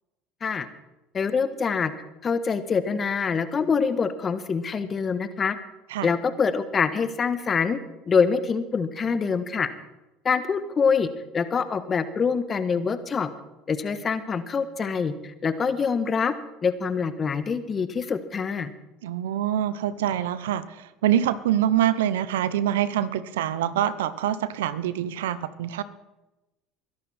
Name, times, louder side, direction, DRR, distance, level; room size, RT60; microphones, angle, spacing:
voice 1, 1.1-1.9 2.2-5.6 6.0-7.8 8.1-9.7 10.2-11.1 11.3-13.3 13.7-16.3 16.6-18.7, left 5 dB, 35° left, 11 dB, 1.4 m, -25 dB
voice 2, 19.0-25.8, right 11 dB, 85° right, 15 dB, 0.8 m, -25 dB
22.5 x 11.5 x 4.4 m, 1.0 s
hypercardioid pair, 85°, 0 cm